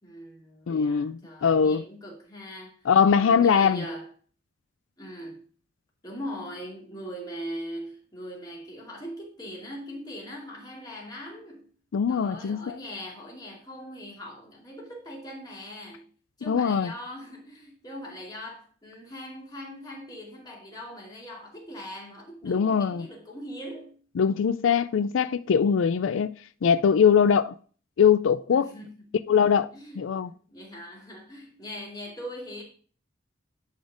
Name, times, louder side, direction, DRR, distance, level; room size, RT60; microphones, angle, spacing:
voice 1, 0.0-2.9 3.2-4.1 5.0-5.5 6.0-11.7 12.1-16.1 16.4-24.0 28.5-29.1 29.7-32.6, equal, 20° left, 2.4 m, -41 dB
voice 2, 0.7-1.8 2.9-3.8 11.9-12.8 16.5-16.9 22.4-23.1 24.2-26.3 26.6-27.5 28.0-28.7 29.3-29.7 30.0-30.3, left 7 dB, 85° left, 0.4 m, -22 dB
10.5 x 4.2 x 5.0 m
head